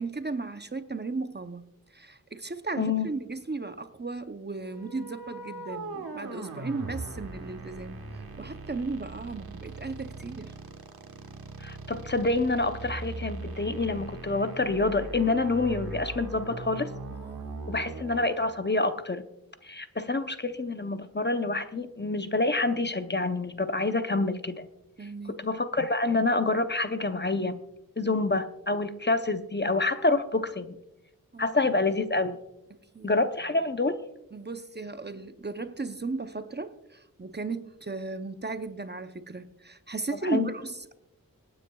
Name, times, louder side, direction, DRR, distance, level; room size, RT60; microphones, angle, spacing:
voice 1, 0.0-1.6 1.9-10.5 17.1-17.7 25.0-25.4 31.3-31.5 32.9-33.1 34.3-40.9, right 3 dB, 30° right, 9 dB, 0.7 m, -36 dB
voice 2, 2.8-3.1 11.6-16.9 17.7-19.3 19.6-24.7 25.3-27.6 28.0-30.8 31.4-32.4 33.0-34.0 40.2-40.5, left 3 dB, 30° left, 9 dB, 0.7 m, -27 dB
sound 1, 4.6-18.5, right 3 dB, 90° right, 1.4 m, -40 dB
26.0 x 9.4 x 2.3 m, 0.88 s
wide cardioid pair, 80°, 35 cm